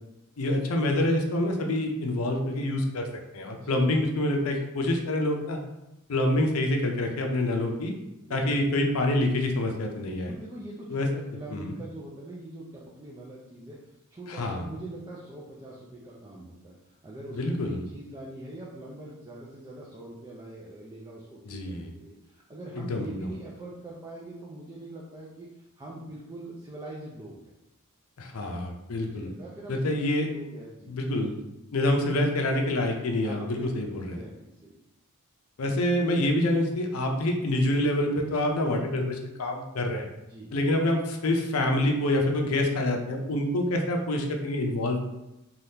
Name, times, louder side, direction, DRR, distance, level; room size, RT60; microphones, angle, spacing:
voice 1, 0.4-3.1 3.3-5.6 6.1-7.9 8.3-10.3 10.9-11.1 11.5-11.7 14.3-14.6 17.3-17.8 21.4-21.9 22.7-23.1 28.2-29.3 29.7-30.3 30.9-31.4 31.7-34.2 35.6-40.1 40.5-45.1, left 1 dB, 75° left, 2 dB, 0.5 m, -26 dB
voice 2, 3.4-3.8 8.2-8.7 10.0-27.5 28.9-31.0 33.2-34.8 40.2-40.7, right 1 dB, 20° right, -4 dB, 0.4 m, -43 dB
3.4 x 2.3 x 2.7 m, 0.91 s
head